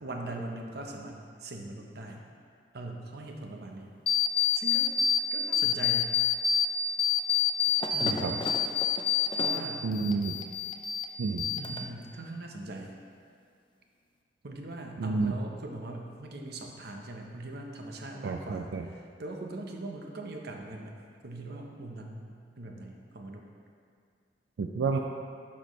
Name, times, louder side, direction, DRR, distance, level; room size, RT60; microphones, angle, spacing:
voice 1, 0.0-2.2 2.7-3.9 4.5-4.9 5.3-6.2 7.9-8.4 9.4-9.9 11.6-12.9 14.4-21.0 21.2-23.5, right 2 dB, 60° right, 2 dB, 0.7 m, -41 dB
sound 1, 4.1-5.2 5.5-6.7 7.0-9.6 9.9-11.1 11.4-12.0, left 8 dB, 25° left, 0.4 m, -27 dB
voice 2, 8.0-8.4 9.8-10.4 11.2-11.5 15.0-15.3 18.2-18.9 24.6-25.0, right 4 dB, 90° right, 3 dB, 0.4 m, -30 dB
11.5 x 4.3 x 3.1 m, 2.2 s
head